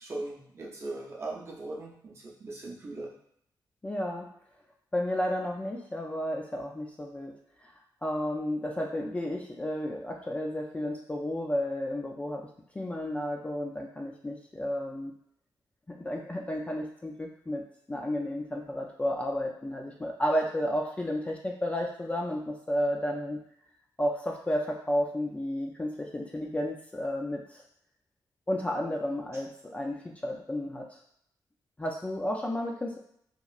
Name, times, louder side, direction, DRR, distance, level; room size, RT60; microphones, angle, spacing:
voice 1, 0.0-3.1, right 2 dB, 35° right, -2 dB, 0.6 m, -39 dB
voice 2, 3.8-4.3 4.9-7.3 8.0-12.5 12.8-15.1 16.0-17.6 17.9-23.4 24.0-27.4 28.5-30.9 31.8-33.0, left 1 dB, 20° left, 0 dB, 0.3 m, -32 dB
2.9 x 2.4 x 2.4 m, 0.68 s
wide cardioid pair, 120°, 8 cm